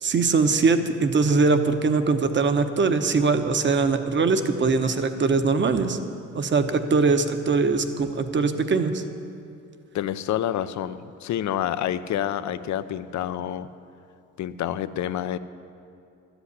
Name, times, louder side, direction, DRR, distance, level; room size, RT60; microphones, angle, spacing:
voice 1, 0.0-6.0 6.3-9.0, right 4 dB, 40° right, 8 dB, 1.0 m, -22 dB
voice 2, 9.9-13.7 14.4-15.4, left 11 dB, 70° left, 13 dB, 0.6 m, -28 dB
13.0 x 8.1 x 8.2 m, 2.5 s
cardioid pair, 90°, 30 cm